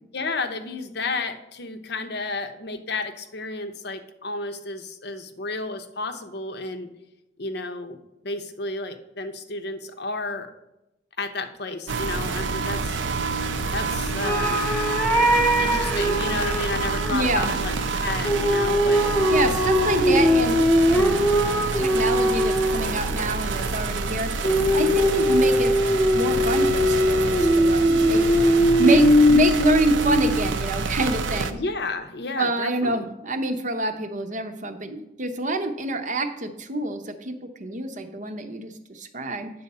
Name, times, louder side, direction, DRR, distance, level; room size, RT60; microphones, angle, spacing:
voice 1, 0.1-6.9 7.4-8.0 8.2-10.5 11.2-13.0 13.7-14.7 15.6-17.8 18.0-19.0 28.8-29.1 31.5-33.1, left 3 dB, 55° left, 7 dB, 0.7 m, -32 dB
sound 1, 11.9-31.5, right 4 dB, 75° right, 0.6 m, -27 dB
sound 2, 14.2-17.2 18.2-23.0 24.4-30.5, equal, 5° left, 0.8 m, -20 dB
voice 2, 17.1-17.5 19.3-21.1 21.7-24.3 24.7-28.2 28.6-31.6 32.4-39.5, right 2 dB, 40° right, 7 dB, 0.7 m, -27 dB
9.4 x 4.2 x 6.6 m, 0.92 s
head